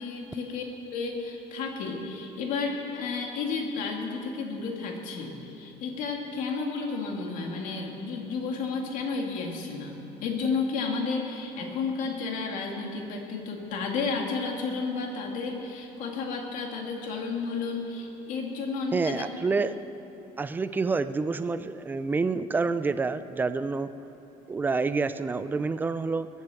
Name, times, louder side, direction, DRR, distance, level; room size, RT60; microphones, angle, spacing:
voice 1, 0.0-19.3, left 4 dB, 55° left, 1 dB, 2.2 m, -32 dB
voice 2, 18.9-19.8 20.4-23.9 24.5-26.3, right 4 dB, 10° right, 13 dB, 0.3 m, -28 dB
22.0 x 8.4 x 7.0 m, 3.0 s
cardioid pair, 165°, 16 cm